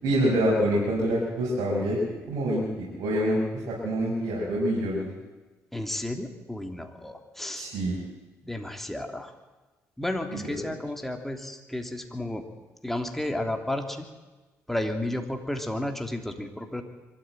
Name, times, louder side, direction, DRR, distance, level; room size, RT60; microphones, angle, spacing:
voice 1, 0.0-5.1 7.5-8.0 10.3-10.5, equal, 75° right, -4 dB, 5.7 m, -26 dB
voice 2, 5.7-7.7 8.4-9.3 10.0-12.5 12.8-14.1 14.7-16.8, left 1 dB, 5° left, 4 dB, 3.1 m, -32 dB
23.5 x 13.5 x 9.1 m, 1.2 s
cardioid pair, 75°, 6 cm